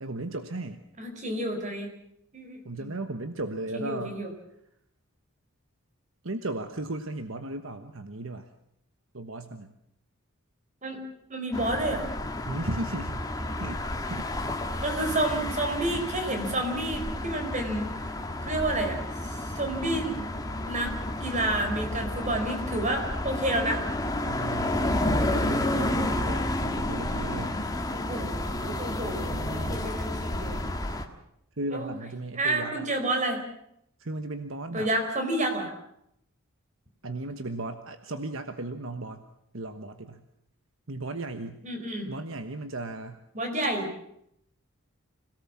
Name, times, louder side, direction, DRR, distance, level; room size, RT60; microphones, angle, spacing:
voice 1, 0.0-0.8 2.6-4.2 6.2-8.5 9.1-9.7 12.4-13.2 13.6-13.8 14.1-14.3 24.3-27.6 29.3-29.8 31.6-32.9 34.0-34.9 37.0-39.2 39.5-40.2 40.9-41.6 42.1-43.2, right 2 dB, 65° right, 8 dB, 1.2 m, -36 dB
voice 2, 1.0-1.9 2.3-2.9 3.7-4.3 10.8-11.0 11.3-12.1 14.8-18.1 18.4-19.0 19.3-20.2 20.6-20.9 21.2-23.8 27.9-30.6 31.7-31.9 32.3-33.4 34.7-35.7 41.6-42.1 43.3-43.9, right 1 dB, 35° right, 5 dB, 4.4 m, -30 dB
sound 1, 11.5-31.0, left 1 dB, 15° left, 1.6 m, -31 dB
26.0 x 17.5 x 7.4 m, 0.76 s
head